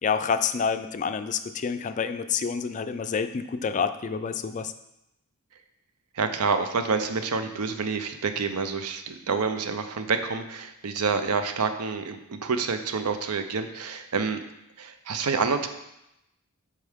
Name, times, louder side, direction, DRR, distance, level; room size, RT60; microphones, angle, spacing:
voice 1, 0.0-4.7, left 6 dB, 35° left, 10 dB, 0.3 m, -28 dB
voice 2, 6.2-14.4 14.8-15.7, right 5 dB, 90° right, 8 dB, 0.6 m, -28 dB
8.1 x 4.5 x 3.6 m, 0.87 s
head